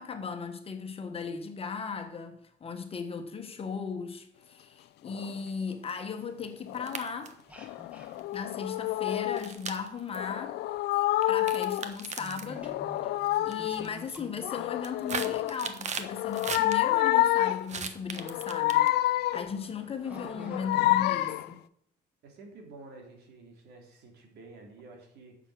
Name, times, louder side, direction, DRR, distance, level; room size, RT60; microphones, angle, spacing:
voice 1, 0.0-7.3 8.3-10.6 11.3-12.8 13.4-21.6, left 6 dB, 35° left, 1.6 m, -37 dB
sound 1, 5.1-5.4 6.7-7.0 7.6-9.5 10.1-12.0 12.4-13.9 14.4-15.6 16.0-17.7 18.2-19.6 20.1-21.5, left 15 dB, 75° left, 0.5 m, -28 dB
sound 2, 6.8-7.4 8.2-8.3 9.4-10.2 11.2-12.5 13.3-13.5 13.8-14.2 14.6-16.7 17.7-19.1, right 6 dB, 45° right, 1.3 m, -37 dB
sound 3, 7.5-10.1 10.4-17.2 18.1-18.2 18.8-19.1 19.6-19.7 20.0-20.8, left 1 dB, 10° right, 2.1 m, -50 dB
voice 2, 19.6-21.0 22.2-25.4, right 3 dB, 75° right, 3.4 m, -50 dB
9.9 x 7.4 x 6.4 m
cardioid pair, 110°, 17 cm